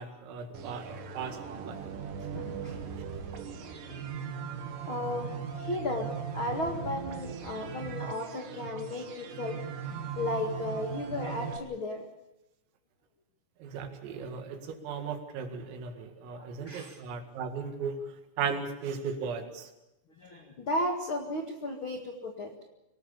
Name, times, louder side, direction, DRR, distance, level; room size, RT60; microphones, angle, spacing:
voice 1, 0.0-1.4 1.6-1.9 13.6-18.0 18.4-19.7, right 5 dB, 85° right, 5 dB, 4.7 m, -36 dB
sound 1, 0.5-11.6, right 6 dB, 55° right, 2.6 m, -39 dB
voice 2, 2.3-2.8 3.4-4.3 4.9-6.1 6.3-12.1 13.8-13.9 16.3-17.0 20.2-22.7, left 1 dB, 65° left, 3 dB, 1.2 m, -35 dB
25.5 x 19.0 x 7.1 m, 0.91 s
omnidirectional pair, 5.8 m